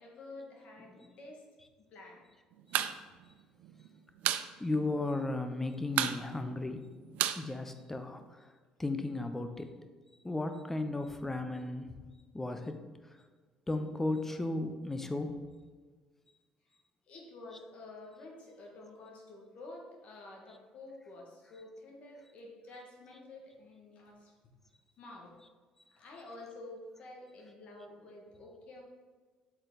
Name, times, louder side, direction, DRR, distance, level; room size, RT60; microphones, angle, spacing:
voice 1, 0.0-0.9 1.2-1.4 1.9-2.2 17.1-24.3 25.0-25.3 25.9-28.8, left 2 dB, 60° left, -1 dB, 1.9 m, -50 dB
sound 1, 2.6-3.0 3.2-3.3 3.6-4.5 4.8-4.9 5.2-5.6 5.9-8.3, right 12 dB, 75° right, 0.4 m, -32 dB
voice 2, 4.6-6.8 7.4-8.5 8.8-9.7 10.2-11.9 12.3-12.8 13.7-15.3, left 2 dB, 10° left, 7 dB, 0.7 m, -35 dB
8.0 x 3.9 x 4.0 m, 1.4 s
cardioid pair, 95°, 2 cm